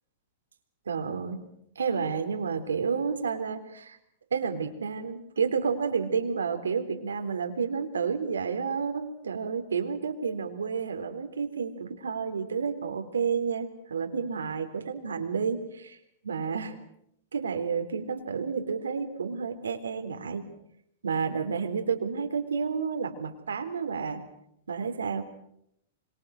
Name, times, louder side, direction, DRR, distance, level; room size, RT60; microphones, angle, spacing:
voice 1, 0.9-1.4 1.8-4.0 4.3-16.0 16.2-16.8 17.3-20.5 21.0-24.2 24.7-25.2, right 6 dB, 90° right, 6 dB, 3.8 m, -30 dB
26.5 x 25.0 x 6.7 m, 0.77 s
hypercardioid pair, 120°, 0 cm